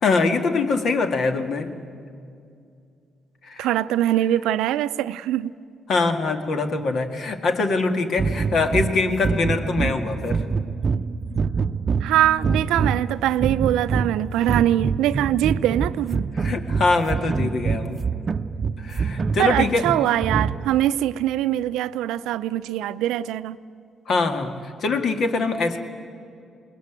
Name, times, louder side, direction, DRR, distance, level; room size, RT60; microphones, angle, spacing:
voice 1, 0.0-1.7 3.4-3.7 5.9-10.4 16.3-18.0 18.8-19.8 24.1-25.8, left 3 dB, 65° left, 6 dB, 2.0 m, -23 dB
voice 2, 3.6-5.5 12.0-16.2 19.4-23.6, right 13 dB, 85° right, 15 dB, 0.5 m, -22 dB
sound 1, 8.2-20.9, right 5 dB, 45° right, 0.6 m, -26 dB
21.5 x 19.0 x 9.1 m, 2.4 s
supercardioid pair, 70°, 0 cm